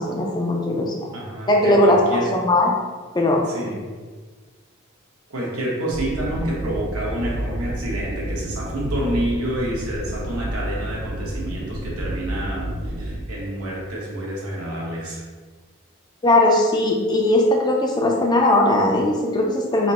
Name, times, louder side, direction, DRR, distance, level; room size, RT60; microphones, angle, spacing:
voice 1, 0.0-1.1 1.5-2.7 3.1-3.7 16.2-19.9, left 1 dB, 20° left, 0 dB, 0.4 m, -19 dB
voice 2, 1.1-2.3 3.5-3.8 5.3-15.2, right 1 dB, 90° right, -4 dB, 1.1 m, -28 dB
sound 1, 5.9-13.2, right 1 dB, 45° right, 0.4 m, -30 dB
4.1 x 2.0 x 4.1 m, 1.4 s
head